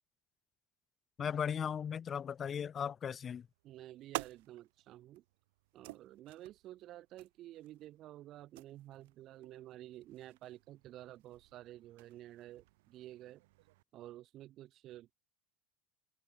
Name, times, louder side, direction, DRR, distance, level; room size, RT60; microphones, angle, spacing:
voice 1, 1.2-3.5, left 8 dB, 30° left, 0.8 m, -37 dB
sound 1, 3.4-13.8, right 22 dB, 65° right, 0.6 m, -51 dB
voice 2, 3.6-5.2 5.7-13.4 13.9-15.1, right 14 dB, 45° right, 0.9 m, -51 dB
open air
hypercardioid pair, 85°, 0 cm